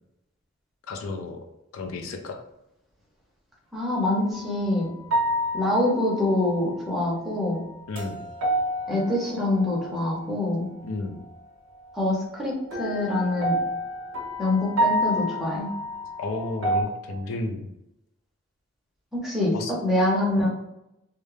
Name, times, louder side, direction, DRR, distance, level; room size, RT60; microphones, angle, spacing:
voice 1, 0.9-1.4 1.7-2.4 7.9-8.3 10.8-11.2 16.2-17.7 19.5-19.7, left 2 dB, 70° left, 4 dB, 0.4 m, -32 dB
voice 2, 3.7-4.9 5.5-7.6 8.9-10.7 11.9-13.5 14.4-15.7 19.1-19.5 19.8-20.5, left 1 dB, ahead, -5 dB, 0.7 m, -25 dB
sound 1, 4.3-4.7 5.1-6.9 7.4-10.3 12.7-16.8, equal, 75° right, 0.7 m, -29 dB
2.3 x 2.0 x 3.1 m, 0.87 s
head